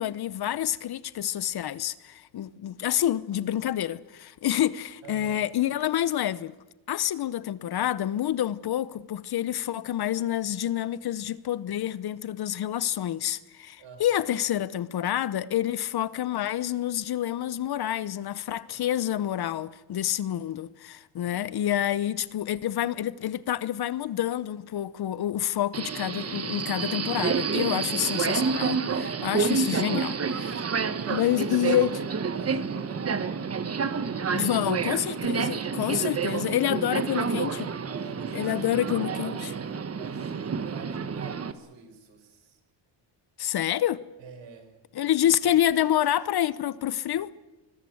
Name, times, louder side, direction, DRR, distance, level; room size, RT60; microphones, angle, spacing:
voice 1, 0.0-6.5 6.9-30.6 31.1-32.0 34.3-37.7 38.3-39.4 43.4-44.0 44.9-47.3, left 11 dB, 55° left, 0.9 m, -28 dB
voice 2, 5.0-5.4 13.8-14.2 21.2-21.4 30.9-33.3 35.8-36.4 37.9-42.6 44.2-45.5, right 5 dB, 70° right, 5.4 m, -47 dB
Subway metro underground, 25.7-41.5, right 5 dB, 30° right, 1.4 m, -29 dB
25.0 x 21.0 x 7.9 m
cardioid pair, 130°, 46 cm